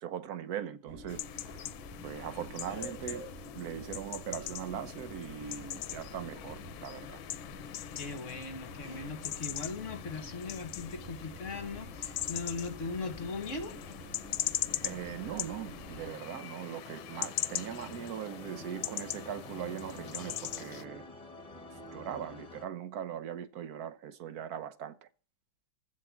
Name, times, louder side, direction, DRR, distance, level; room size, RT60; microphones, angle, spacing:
voice 1, 0.0-1.7 2.0-3.3 3.5-7.2 14.8-21.0 21.9-25.1, right 9 dB, 60° right, 1.1 m, -40 dB
sound 1, 0.9-16.1, equal, 20° right, 5.3 m, -48 dB
sound 2, 1.1-20.8, left 13 dB, 75° left, 1.4 m, -41 dB
voice 2, 8.0-13.8, left 3 dB, 45° left, 1.2 m, -39 dB
sound 3, 8.7-22.6, left 1 dB, 20° left, 1.3 m, -51 dB
15.0 x 5.1 x 7.2 m
omnidirectional pair, 2.3 m